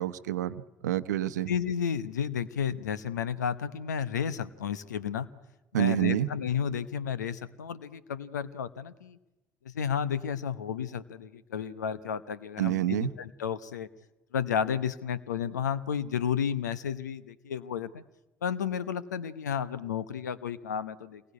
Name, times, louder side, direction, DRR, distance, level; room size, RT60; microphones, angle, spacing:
voice 1, 0.0-1.5 5.7-6.3 12.6-13.1, right 13 dB, 85° right, 13 dB, 0.9 m, -28 dB
voice 2, 1.5-5.3 5.8-9.2 9.6-13.9 14.3-18.0 18.4-21.2, left 8 dB, 90° left, 15 dB, 0.9 m, -32 dB
27.5 x 21.5 x 9.5 m, 1.0 s
hypercardioid pair, 60°, 9 cm